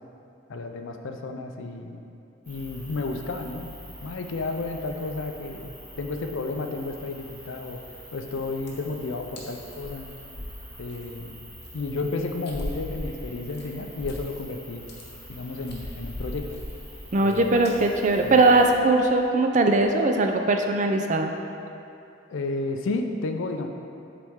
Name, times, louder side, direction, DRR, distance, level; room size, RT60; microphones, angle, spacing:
voice 1, 0.5-2.0 2.5-3.8 4.0-7.8 8.1-10.1 10.8-11.4 11.7-14.8 15.3-16.5 17.2-17.5 18.2-18.4 22.3-23.7, left 3 dB, 75° left, 5 dB, 0.5 m, -32 dB
sound 1, 2.4-18.7, equal, 10° right, 1.3 m, -45 dB
sound 2, 8.3-8.4 8.6-9.0 9.4-9.5 9.7-11.3 11.6-11.7 12.5-14.5 14.7-15.0 15.5-17.3 17.6-17.8 18.1-18.3 18.6-18.7 19.0-19.2 19.7-19.9, left 1 dB, 55° left, 1.0 m, -38 dB
voice 2, 17.1-21.3, right 2 dB, 40° right, 4 dB, 0.4 m, -20 dB
7.6 x 4.1 x 3.6 m, 2.7 s
head